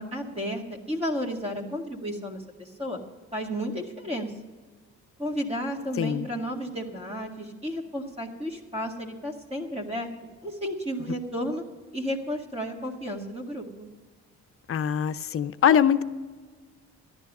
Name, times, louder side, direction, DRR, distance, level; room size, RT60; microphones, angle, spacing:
voice 1, 0.0-3.0 3.3-4.3 5.2-10.1 10.4-11.6 11.9-13.9, equal, 20° right, 0 dB, 1.9 m, -32 dB
voice 2, 6.0-6.3 14.7-16.0, left 9 dB, 45° left, 12 dB, 0.7 m, -23 dB
13.5 x 11.0 x 5.4 m, 1.4 s
cardioid pair, 90°, 30 cm